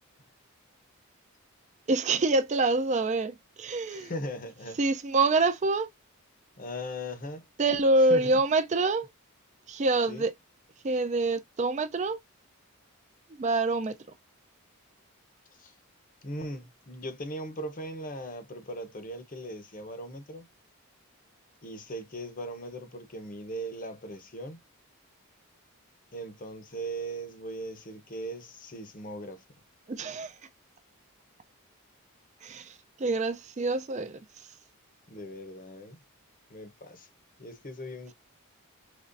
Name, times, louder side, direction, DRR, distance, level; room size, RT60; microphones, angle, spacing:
voice 1, 1.9-4.1 4.8-5.9 7.6-9.1 9.7-10.3 10.8-12.2 13.4-14.0 29.9-30.3 32.4-34.2, right 3 dB, 30° right, 0.4 m, -26 dB
voice 2, 3.9-4.8 6.6-7.5 8.1-8.4 10.1-10.3 15.6-15.7 16.2-20.5 21.6-24.6 26.1-29.4 35.1-36.0 36.5-37.1 37.4-38.1, equal, 35° left, 0.7 m, -39 dB
5.3 x 3.1 x 2.5 m
head